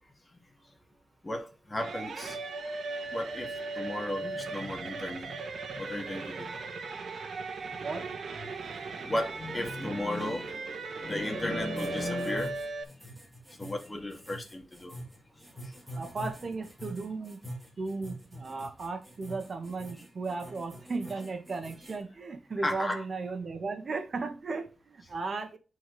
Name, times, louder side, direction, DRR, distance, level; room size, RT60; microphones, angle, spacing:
voice 1, 1.2-2.4 3.1-5.4 5.7-6.5 8.5-12.6 13.6-14.9 15.6-15.7 22.6-23.0, left 1 dB, 25° left, 2.3 m, -35 dB
sound 1, 1.8-12.8, right 3 dB, 80° right, 1.4 m, -38 dB
sound 2, 11.8-22.0, equal, 5° right, 4.1 m, -45 dB
voice 2, 16.0-17.5 17.8-25.6, right 3 dB, 55° right, 1.6 m, -36 dB
9.5 x 4.6 x 3.3 m
wide cardioid pair, 90°, 0 cm